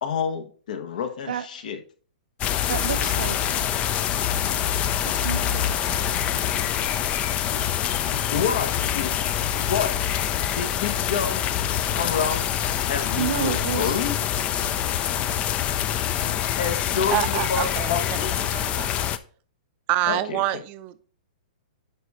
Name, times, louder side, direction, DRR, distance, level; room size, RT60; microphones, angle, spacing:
voice 1, 0.0-1.8 8.3-9.2 9.6-9.9 10.6-11.4 11.9-14.2 16.2-18.5 20.1-20.4, left 7 dB, 65° left, 1.2 m, -28 dB
sound 1, 2.4-19.2, left 10 dB, 25° left, 0.5 m, -25 dB
voice 2, 2.7-3.5 5.0-6.2 13.2-14.0, right 9 dB, 75° right, 0.7 m, -30 dB
voice 3, 17.1-18.3 18.5-18.9 19.9-21.0, right 15 dB, 35° right, 0.6 m, -27 dB
10.0 x 3.6 x 4.2 m
hypercardioid pair, 130°, 5 cm